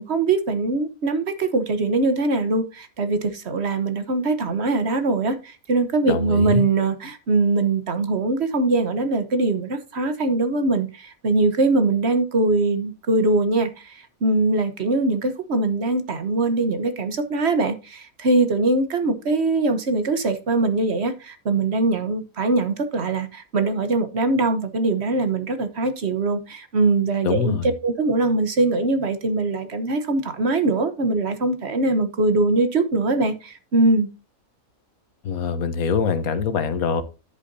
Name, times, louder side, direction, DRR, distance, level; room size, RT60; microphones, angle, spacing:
voice 1, 0.0-27.6 27.8-34.1, right 3 dB, 50° right, 1.3 m, -22 dB
voice 2, 6.1-6.7 27.2-27.7 35.2-37.0, left 6 dB, 85° left, 1.5 m, -23 dB
10.5 x 8.2 x 2.7 m
omnidirectional pair, 1.5 m